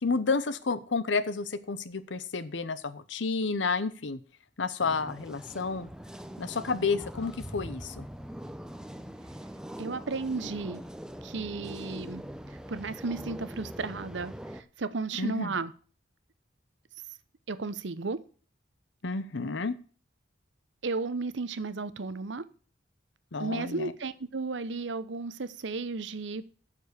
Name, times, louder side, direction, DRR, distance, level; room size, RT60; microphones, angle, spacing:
voice 1, 0.0-4.2 4.6-5.9 6.4-8.1 15.2-15.5 19.0-19.8 23.3-23.9, left 4 dB, 75° left, 14 dB, 0.8 m, -30 dB
sound 1, 4.8-14.6, equal, 5° right, 0.6 m, -42 dB
voice 2, 9.8-10.8 11.2-15.7 17.5-18.2 20.8-22.5 23.4-26.4, right 3 dB, 70° right, 15 dB, 0.8 m, -34 dB
7.4 x 6.9 x 8.2 m, 0.40 s
head